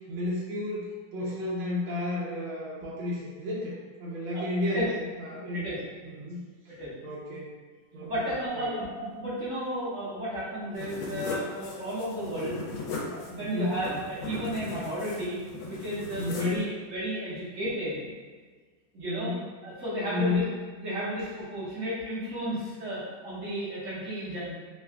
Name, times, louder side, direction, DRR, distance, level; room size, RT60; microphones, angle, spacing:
voice 1, 0.0-3.7 4.0-5.7 6.0-6.4 7.0-7.5 7.9-8.7 13.4-13.8 16.2-16.6 19.1-19.4 20.1-20.5, left 2 dB, 80° right, -6 dB, 1.4 m, -32 dB
voice 2, 8.0-12.6 13.1-18.0 18.9-19.3 19.6-20.4 20.8-24.5, equal, 45° right, -10 dB, 1.3 m, -33 dB
sound 1, 10.7-16.6, left 3 dB, 90° left, 1.4 m, -38 dB
3.7 x 2.3 x 3.3 m, 1.5 s
omnidirectional pair, 2.1 m